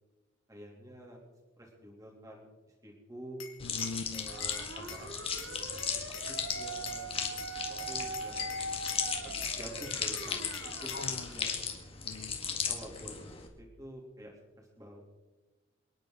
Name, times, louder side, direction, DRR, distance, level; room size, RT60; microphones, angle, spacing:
voice 1, 0.5-1.2 1.6-3.4 4.1-5.8 6.3-8.5 9.2-12.0 12.7-15.0, equal, 15° right, -1 dB, 3.1 m, -49 dB
Glass, 3.4-5.1 5.4-7.0 7.4-9.1 9.4-11.1, left 8 dB, 90° left, 2.6 m, -45 dB
voice 2, 3.6-4.3 10.9-11.3 12.0-12.4, left 3 dB, 70° left, 15 dB, 0.7 m, -41 dB
sound 1, 3.6-13.5, left 6 dB, 30° left, 1.8 m, -37 dB
sound 2, 4.3-11.5, right 3 dB, 65° right, 1.2 m, -42 dB
28.0 x 10.5 x 3.9 m, 1.1 s
head